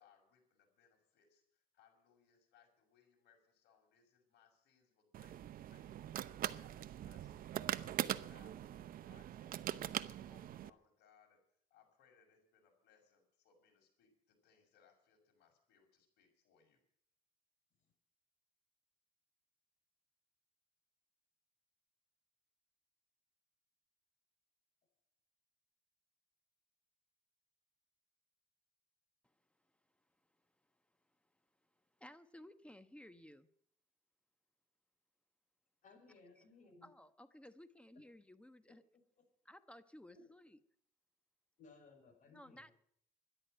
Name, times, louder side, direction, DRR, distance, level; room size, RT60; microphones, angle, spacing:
voice 1, 0.0-11.4 11.7-16.8, left 7 dB, 80° left, 2 dB, 6.4 m, -71 dB
sound 1, 5.1-10.7, right 12 dB, 60° right, 0.8 m, -42 dB
voice 2, 32.0-33.5 36.4-36.5 36.8-38.8 39.4-40.6 42.3-42.7, left 1 dB, 5° left, 12 dB, 1.1 m, -57 dB
voice 3, 35.8-36.9 38.7-39.3 40.1-40.3 41.6-42.7, left 3 dB, 50° left, 2 dB, 6.8 m, -62 dB
13.5 x 11.0 x 9.0 m, 0.67 s
cardioid pair, 110°, 17 cm